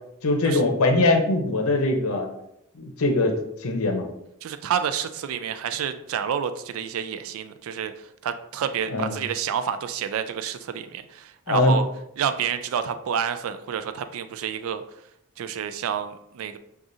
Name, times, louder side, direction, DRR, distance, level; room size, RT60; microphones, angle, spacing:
voice 1, 0.2-2.3 2.8-3.3 3.6-4.0 8.9-9.2 11.5-11.8, left 2 dB, 85° left, 4 dB, 0.7 m, -21 dB
voice 2, 4.4-11.9 12.2-14.8 15.4-16.6, right 8 dB, 70° right, 10 dB, 0.3 m, -29 dB
6.1 x 2.4 x 2.6 m, 0.79 s
head